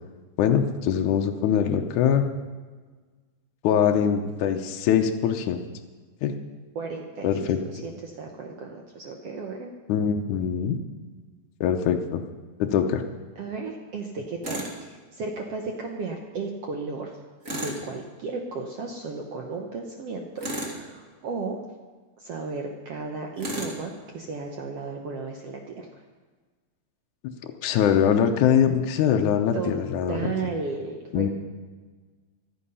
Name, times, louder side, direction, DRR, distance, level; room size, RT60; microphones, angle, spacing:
voice 1, 0.4-2.3 3.6-5.6 6.2-6.3 7.2-7.6 9.9-10.8 11.6-12.2 12.6-13.0 27.6-30.2 31.1-31.3, left 8 dB, 70° left, 3 dB, 2.0 m, -22 dB
voice 2, 6.7-9.7 13.4-17.1 17.5-21.6 22.2-25.9 29.5-29.8 30.1-31.3, right 4 dB, 70° right, 2 dB, 1.5 m, -34 dB
Tools, 14.4-14.8 17.4-17.9 20.4-20.8 23.4-23.8, right 1 dB, 30° right, 1.7 m, -32 dB
15.0 x 12.5 x 5.6 m, 1.4 s
omnidirectional pair, 4.1 m